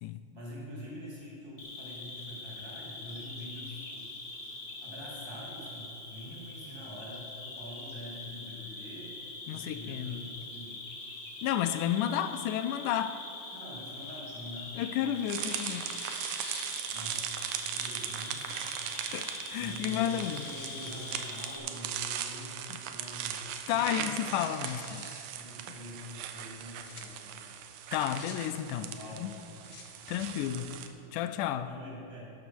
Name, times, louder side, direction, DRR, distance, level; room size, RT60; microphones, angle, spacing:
voice 1, 0.3-4.4 4.8-9.1 9.5-10.9 13.5-14.7 15.3-15.4 16.6-18.6 19.6-24.4 24.7-24.8 25.4-27.5 28.9-29.6 31.6-32.3, left 1 dB, 10° right, -6 dB, 2.6 m, -45 dB
Cricket, 1.6-21.6, left 2 dB, 35° left, 1.3 m, -43 dB
voice 2, 9.5-10.2 11.4-13.2 14.8-15.9 19.1-20.6 22.7-22.8 23.7-25.0 27.9-29.3 30.1-30.7 31.1-31.7, left 11 dB, 85° left, 11 dB, 2.1 m, -32 dB
Tearing, 13.3-14.7 15.2-17.2 17.6-17.7 18.6-18.9 19.5-21.3 21.6-21.7 22.3-22.7 23.1-23.2 23.5-23.6 24.0-25.2 26.5-27.0 27.8-28.3 29.3-29.8, left 4 dB, 60° left, 2.2 m, -48 dB
sound 1, 15.3-30.9, right 9 dB, 85° right, 2.3 m, -39 dB
12.5 x 11.5 x 4.6 m, 2.8 s
omnidirectional pair, 3.6 m